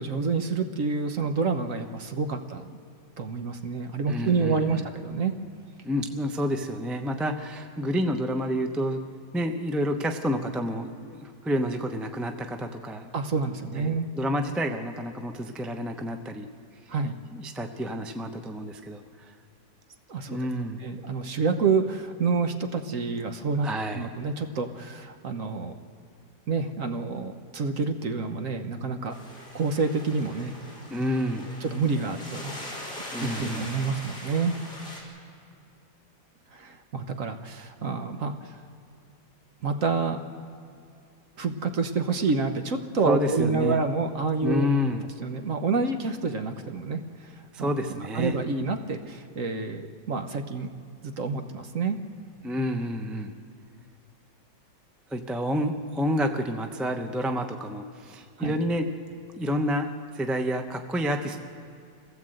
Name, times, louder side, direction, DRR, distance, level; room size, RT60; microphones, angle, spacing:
voice 1, 0.0-2.7 3.2-5.3 13.1-14.1 16.9-17.2 20.1-20.4 20.8-23.7 23.9-25.7 26.5-29.1 29.5-30.5 31.6-32.5 33.2-34.6 36.5-38.6 39.6-40.2 41.4-44.7 45.2-47.3 47.6-50.7 51.0-52.0 58.4-58.5, right 4 dB, 50° right, 6 dB, 1.2 m, -28 dB
voice 2, 4.1-4.9 5.8-9.0 9.3-13.1 13.8-16.5 17.3-19.0 20.3-20.8 23.6-24.1 30.9-31.5 33.1-33.7 43.0-43.8 44.4-45.1 47.5-48.4 52.4-53.3 55.1-58.9 59.4-61.4, equal, ahead, 5 dB, 0.4 m, -29 dB
sound 1, 29.1-35.0, left 1 dB, 30° left, 4.8 m, -41 dB
26.0 x 16.5 x 7.9 m, 2.4 s
omnidirectional pair, 1.9 m